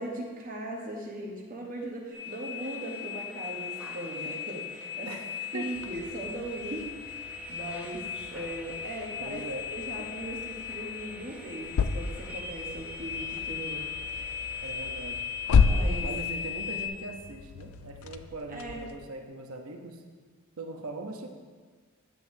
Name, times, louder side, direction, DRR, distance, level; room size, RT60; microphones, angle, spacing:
voice 1, 0.0-5.1 5.5-8.1 8.3-9.4 9.7-14.5 15.5-16.1 18.5-18.8, right 1 dB, 40° right, -1 dB, 1.0 m, -39 dB
sound 1, 2.1-16.9, left 8 dB, 5° right, 0.6 m, -38 dB
voice 2, 5.0-5.7 9.2-9.6 10.0-10.1 14.6-15.2 16.0-20.0 20.6-21.3, right 2 dB, 70° right, 3 dB, 0.8 m, -40 dB
sound 2, 5.8-19.0, left 5 dB, 70° left, 0.4 m, -33 dB
9.1 x 8.1 x 2.7 m, 1.5 s
head